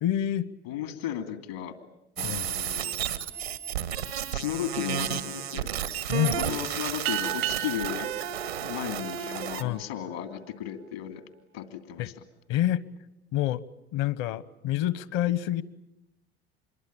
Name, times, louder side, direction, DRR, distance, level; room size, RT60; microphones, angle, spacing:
voice 1, 0.0-0.5 2.2-2.5 6.1-6.4 9.6-9.8 12.0-12.1 12.5-12.9 13.3-13.6 13.9-15.6, left 13 dB, 60° left, 18 dB, 1.2 m, -27 dB
voice 2, 0.6-1.7 2.2-2.9 4.3-5.7 6.3-8.1 8.6-11.2 11.5-12.1, left 10 dB, 80° left, 8 dB, 2.7 m, -35 dB
sound 1, 2.2-9.6, right 9 dB, 90° right, 1.7 m, -32 dB
sound 2, 7.0-10.0, right 17 dB, 60° right, 0.9 m, -34 dB
26.5 x 22.5 x 8.8 m, 0.88 s
hypercardioid pair, 70°, 31 cm